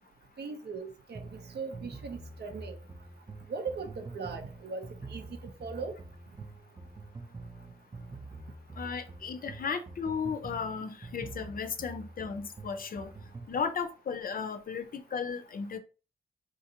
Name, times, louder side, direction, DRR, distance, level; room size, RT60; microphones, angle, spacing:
voice 1, 0.4-2.8 3.5-6.0, right 4 dB, 70° right, 0.6 m, -39 dB
sound 1, 1.2-13.6, right 3 dB, 20° right, 0.5 m, -46 dB
voice 2, 8.8-13.1 13.5-15.8, left 6 dB, 55° left, 0.4 m, -35 dB
3.8 x 2.5 x 2.8 m
wide cardioid pair, 105°, 18 cm